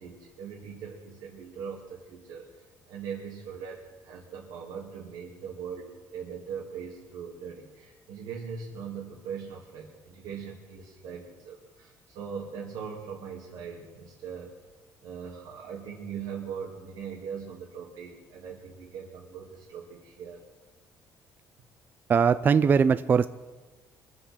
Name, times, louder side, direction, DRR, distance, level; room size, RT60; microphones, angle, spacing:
voice 1, 0.0-14.5 15.0-20.4, right 6 dB, 80° right, -4 dB, 2.6 m, -40 dB
voice 2, 22.1-23.3, right 6 dB, 30° right, 14 dB, 0.4 m, -21 dB
24.0 x 8.1 x 6.2 m, 1.2 s
cardioid pair, 140°, 7 cm